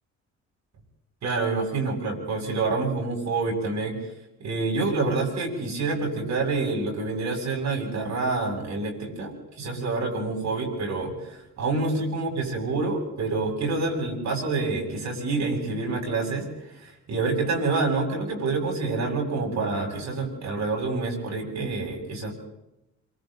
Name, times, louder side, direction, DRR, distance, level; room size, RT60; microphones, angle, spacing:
voice 1, 1.2-4.0 4.4-16.5 16.8-22.3, right 3 dB, 65° right, 1 dB, 7.8 m, -27 dB
27.0 x 24.5 x 4.0 m, 0.90 s
cardioid pair, 90°, 30 cm